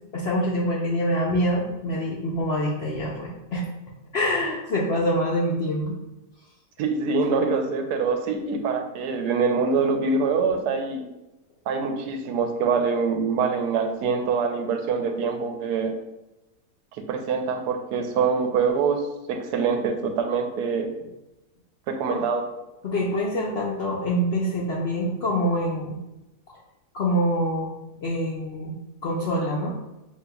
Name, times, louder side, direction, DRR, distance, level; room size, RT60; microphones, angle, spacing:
voice 1, 0.1-3.7 4.1-6.0 22.1-22.2 22.8-26.0 26.9-27.7 28.0-28.7 29.0-29.8, equal, 65° left, -4 dB, 0.6 m, -25 dB
voice 2, 6.8-11.0 11.7-15.9 16.9-20.9 21.9-22.4, right 5 dB, 85° right, 5 dB, 1.2 m, -24 dB
6.3 x 2.7 x 2.2 m, 0.97 s
omnidirectional pair, 1.7 m